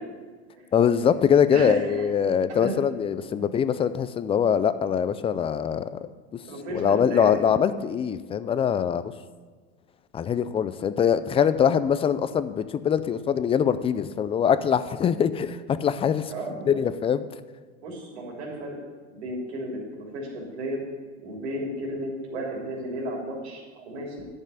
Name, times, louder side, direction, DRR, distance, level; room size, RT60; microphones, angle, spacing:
voice 1, 0.7-5.9 6.7-9.1 10.1-16.3 16.7-17.2, left 8 dB, 15° left, 13 dB, 0.4 m, -23 dB
voice 2, 1.5-2.1 2.6-2.7 6.5-7.3 16.3-16.8 17.8-18.8 19.1-20.8 21.2-24.2, right 1 dB, 75° right, -2 dB, 3.3 m, -33 dB
11.0 x 5.5 x 8.2 m, 1.4 s
hypercardioid pair, 110°, 34 cm